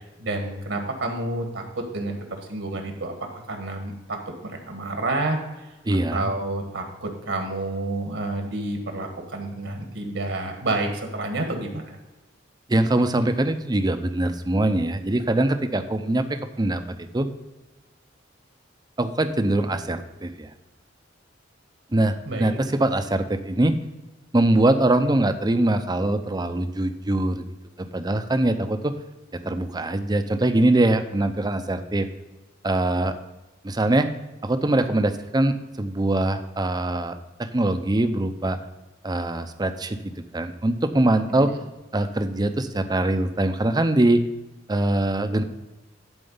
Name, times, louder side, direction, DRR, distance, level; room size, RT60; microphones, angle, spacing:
voice 1, 0.2-4.2 4.4-5.7 6.1-11.8 22.3-22.6 41.2-41.5, right 2 dB, 75° right, 3 dB, 1.6 m, -29 dB
voice 2, 5.9-6.3 12.7-17.3 19.0-20.5 21.9-23.8 24.3-27.4 27.9-28.9 29.3-32.1 32.6-33.1 33.6-34.1 34.4-38.6 39.0-41.5 41.9-44.2 44.7-45.4, right 1 dB, 20° right, 9 dB, 0.6 m, -23 dB
11.5 x 4.5 x 5.5 m, 1.1 s
head